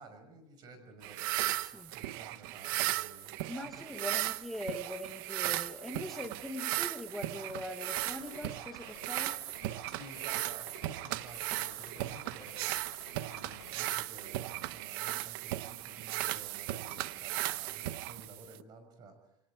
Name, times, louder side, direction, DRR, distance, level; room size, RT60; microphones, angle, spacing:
voice 1, 0.0-3.3 3.7-3.8 9.9-12.7 13.1-19.2, right 3 dB, 35° right, 8 dB, 5.6 m, -53 dB
sound 1, 1.0-18.6, right 16 dB, 65° right, 0.8 m, -37 dB
voice 2, 1.5-1.9 3.5-9.4, left 1 dB, ahead, 3 dB, 1.3 m, -42 dB
sound 2, 8.0-14.0, left 11 dB, 75° left, 3.6 m, -55 dB
28.0 x 22.5 x 4.9 m, 0.85 s
supercardioid pair, 155°, 12 cm